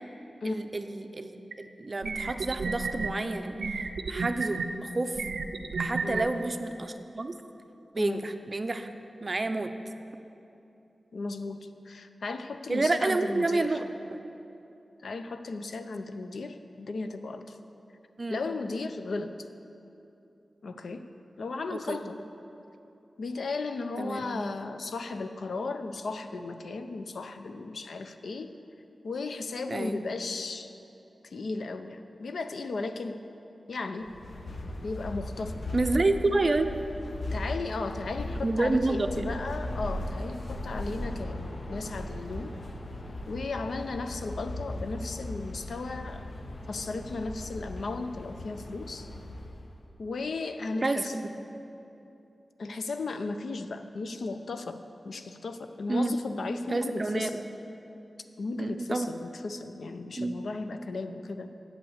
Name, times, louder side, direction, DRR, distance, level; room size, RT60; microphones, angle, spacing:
voice 1, 0.4-3.6 4.1-5.2 5.7-7.3 7.9-8.9 9.2-9.7 12.7-14.2 18.2-18.4 21.7-22.0 24.0-24.3 29.7-30.0 35.7-36.7 38.4-39.3 50.8-51.3 55.9-56.2 56.7-57.4 58.6-59.1 60.2-60.4, right 2 dB, 40° right, 8 dB, 0.5 m, -29 dB
sound 1, 1.5-1.6 2.0-3.1 3.6-4.7 5.2-6.2, right 4 dB, 90° right, 0.5 m, -31 dB
voice 2, 11.1-13.8 15.0-17.6 18.3-19.3 20.6-21.0 21.4-22.2 23.2-28.5 29.0-30.7 31.2-33.2 33.7-34.1 34.8-35.6 37.3-42.5 43.3-46.2 46.7-49.1 50.0-51.1 52.6-57.4 58.4-61.5, left 3 dB, 85° left, 8 dB, 0.5 m, -35 dB
sound 2, 34.0-49.8, left 1 dB, 60° left, 1.0 m, -38 dB
8.7 x 8.1 x 7.2 m, 2.8 s
wide cardioid pair, 95°, 0 cm